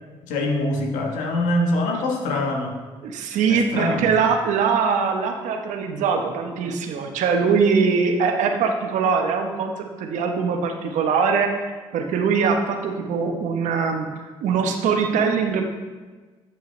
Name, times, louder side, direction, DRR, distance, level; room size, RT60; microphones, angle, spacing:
voice 1, 0.2-2.7 3.5-4.1, left 1 dB, 80° left, 2 dB, 1.2 m, -24 dB
voice 2, 3.0-15.6, right 5 dB, 75° right, 4 dB, 1.0 m, -22 dB
8.1 x 7.9 x 3.2 m, 1.3 s
supercardioid pair, 60°, 13 cm